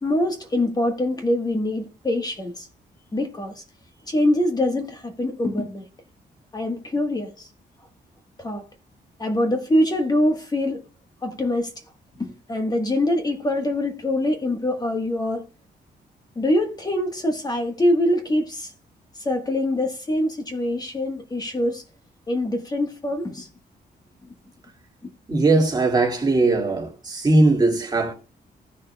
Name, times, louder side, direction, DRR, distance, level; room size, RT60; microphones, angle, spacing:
voice 1, 0.0-2.7 3.1-3.6 4.1-5.9 6.5-7.5 8.4-8.6 9.2-10.8 11.2-11.7 12.2-15.5 16.3-18.7 19.1-21.8 22.3-23.5 25.0-25.1, left 1 dB, 20° left, 1.3 m, -24 dB
voice 2, 25.3-28.1, right 2 dB, 25° right, 2.1 m, -19 dB
15.5 x 6.6 x 2.2 m
wide cardioid pair, 155°, 17 cm